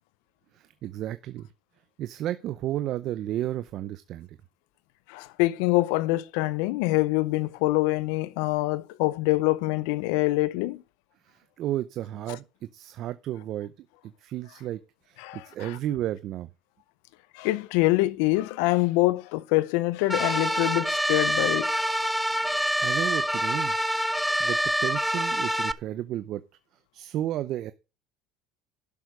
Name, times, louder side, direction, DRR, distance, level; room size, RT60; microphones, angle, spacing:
voice 1, 0.5-1.5 2.0-4.3 11.3-12.4 12.7-14.8 15.1-16.5 22.4-23.8 24.4-26.4 26.9-27.7, right 13 dB, 55° right, 0.6 m, -33 dB
voice 2, 5.1-10.8 15.2-15.8 17.3-21.9, left 19 dB, 80° left, 0.5 m, -25 dB
sound 1, 20.1-25.7, equal, ahead, 0.5 m, -26 dB
12.0 x 6.3 x 4.9 m
supercardioid pair, 110°, 0 cm